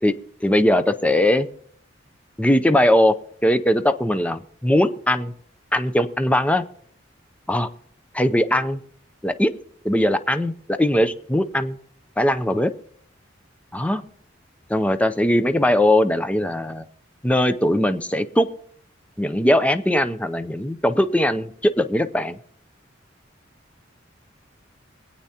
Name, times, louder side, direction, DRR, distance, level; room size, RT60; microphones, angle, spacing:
voice 1, 0.4-1.5 2.4-3.1 3.4-5.3 5.7-6.6 7.5-7.7 8.1-8.8 9.2-9.5 9.8-11.8 12.2-12.7 13.7-14.0 14.7-16.8 17.2-18.5 19.2-22.4, left 1 dB, 5° left, 10 dB, 0.5 m, -20 dB
23.5 x 8.6 x 2.8 m, 0.63 s
head